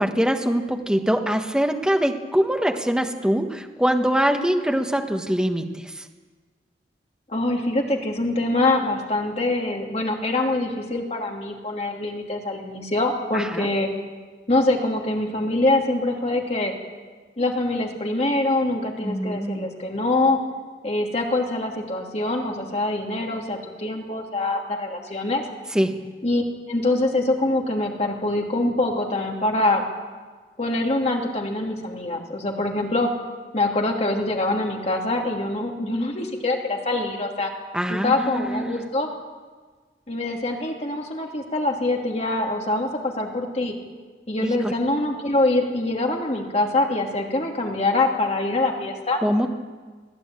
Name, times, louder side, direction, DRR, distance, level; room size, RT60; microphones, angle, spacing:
voice 1, 0.0-6.0 13.3-13.7 19.0-19.7 25.7-26.0 37.7-38.8 44.4-44.7 49.2-49.5, equal, 5° right, 4 dB, 1.3 m, -23 dB
voice 2, 7.3-13.9 14.5-16.7 17.4-20.4 20.8-25.4 26.2-29.8 30.6-33.1 33.5-37.5 37.9-39.1 40.1-43.7 44.3-49.2, left 2 dB, 35° left, 1 dB, 2.9 m, -24 dB
22.0 x 14.5 x 9.0 m, 1.4 s
head